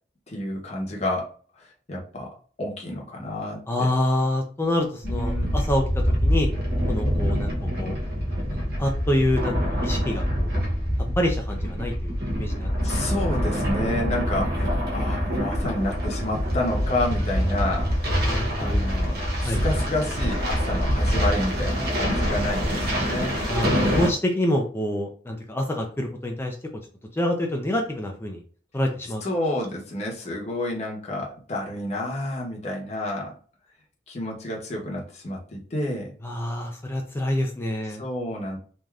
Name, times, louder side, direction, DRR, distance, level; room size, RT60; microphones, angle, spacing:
voice 1, 0.3-1.3 1.6-3.9 5.0-5.6 12.8-17.9 18.6-23.3 29.2-33.3 34.1-36.1 37.9-38.6, left 1 dB, 40° left, -1 dB, 0.8 m, -30 dB
voice 2, 3.7-5.8 6.2-6.5 6.9-7.5 7.8-8.0 8.5-9.5 9.8-10.6 11.2-12.9 18.2-18.8 19.4-19.6 23.5-26.5 27.1-28.4 28.7-29.2 36.2-38.0, left 1 dB, 15° left, 2 dB, 0.4 m, -26 dB
sound 1, 5.0-24.1, equal, 60° right, 0.9 m, -25 dB
3.2 x 2.6 x 2.3 m, 0.43 s
head